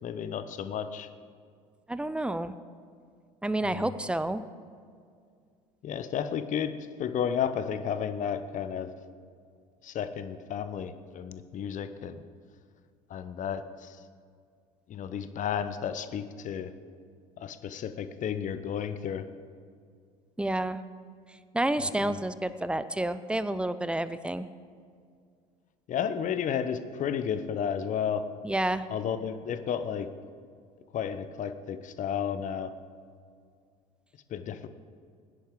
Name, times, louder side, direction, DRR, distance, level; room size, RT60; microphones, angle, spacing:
voice 1, 0.0-1.1 3.7-3.9 5.8-6.7 7.0-8.9 9.8-12.2 13.1-14.0 14.9-16.7 17.4-19.2 25.9-28.3 28.9-30.1 30.9-32.7 34.3-34.7, left 8 dB, 40° left, 11 dB, 0.9 m, -32 dB
voice 2, 1.9-2.5 3.4-4.4 20.4-20.8 21.5-24.5 28.4-28.8, right 1 dB, 5° right, 13 dB, 0.6 m, -29 dB
19.5 x 10.5 x 3.8 m, 2.2 s
figure-of-eight pair, 65°, 19 cm